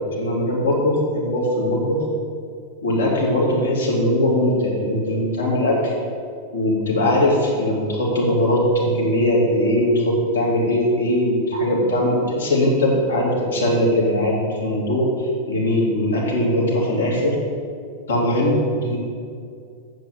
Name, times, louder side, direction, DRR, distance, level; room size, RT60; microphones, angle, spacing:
voice 1, 0.1-2.0 2.8-5.9 6.5-17.4 18.1-19.0, left 1 dB, 70° left, -4 dB, 2.8 m, -20 dB
7.8 x 7.0 x 7.3 m, 2.3 s
figure-of-eight pair, 90°, 0 cm